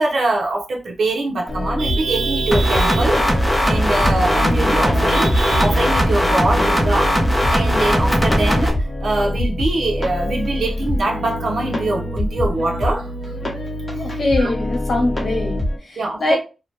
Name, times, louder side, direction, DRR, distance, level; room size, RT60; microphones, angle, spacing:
voice 1, 0.0-7.1 7.5-13.1 13.9-14.1 14.4-14.5 16.0-16.4, right 2 dB, 75° right, 0.6 m, -23 dB
sound 1, 1.5-15.8, left 1 dB, 30° left, 0.8 m, -24 dB
sound 2, 2.5-8.7, equal, 5° left, 0.6 m, -18 dB
voice 2, 14.0-16.4, left 2 dB, 60° left, 1.0 m, -22 dB
2.8 x 2.1 x 3.1 m
wide cardioid pair, 105°, 0 cm